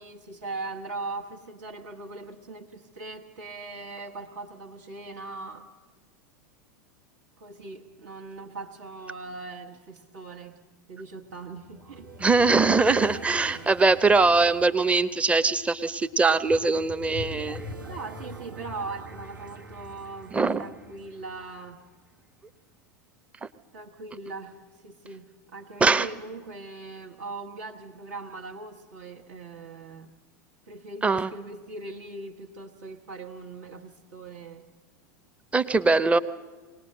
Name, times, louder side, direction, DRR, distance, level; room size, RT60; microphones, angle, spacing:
voice 1, 0.0-5.7 7.4-10.6 10.9-12.1 17.9-21.8 23.7-30.1 30.7-34.6, right 3 dB, 65° right, -1 dB, 1.3 m, -40 dB
sound 1, 11.2-22.0, right 1 dB, 85° right, 1.6 m, -43 dB
voice 2, 12.2-17.6 20.3-20.6 25.8-26.1 31.0-31.3 35.5-36.2, right 3 dB, 10° right, 13 dB, 0.7 m, -22 dB
21.5 x 19.0 x 6.5 m, 1.4 s
figure-of-eight pair, 90°, 10 cm